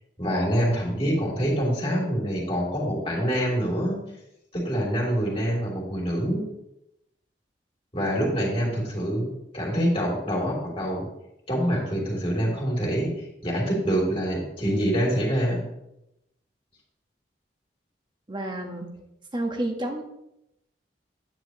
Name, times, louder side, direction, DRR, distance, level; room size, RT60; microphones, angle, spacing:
voice 1, 0.2-4.0 4.5-6.4 7.9-11.1 11.5-13.1 13.4-15.6, equal, 35° left, -4 dB, 3.1 m, -25 dB
voice 2, 18.3-18.9 19.3-20.0, right 1 dB, 25° right, 2 dB, 1.4 m, -30 dB
9.5 x 9.5 x 3.1 m, 0.84 s
head